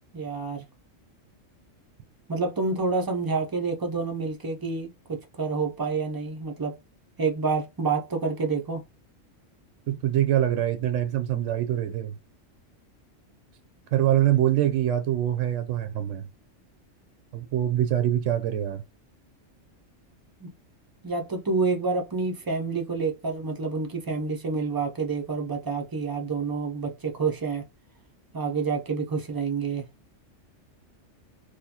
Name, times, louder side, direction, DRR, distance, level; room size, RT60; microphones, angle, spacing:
voice 1, 0.1-0.6 2.3-6.7 7.2-8.8 20.4-20.5 21.0-27.6 28.3-29.8, right 4 dB, 25° right, 0.5 m, -28 dB
voice 2, 9.9-12.2 13.9-16.3 17.3-18.8, right 12 dB, 75° right, 0.9 m, -24 dB
4.1 x 2.2 x 2.8 m
omnidirectional pair, 1.3 m